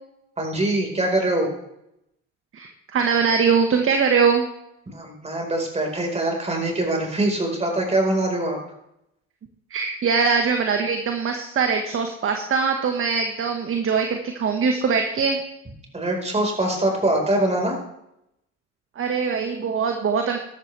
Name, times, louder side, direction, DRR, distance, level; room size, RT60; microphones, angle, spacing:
voice 1, 0.4-1.5 4.9-8.6 15.9-17.8, right 1 dB, 15° right, 1 dB, 4.6 m, -23 dB
voice 2, 2.5-4.5 9.7-15.4 19.0-20.4, right 5 dB, 35° right, 4 dB, 1.5 m, -22 dB
13.0 x 12.5 x 3.4 m, 0.81 s
hypercardioid pair, 80°, 37 cm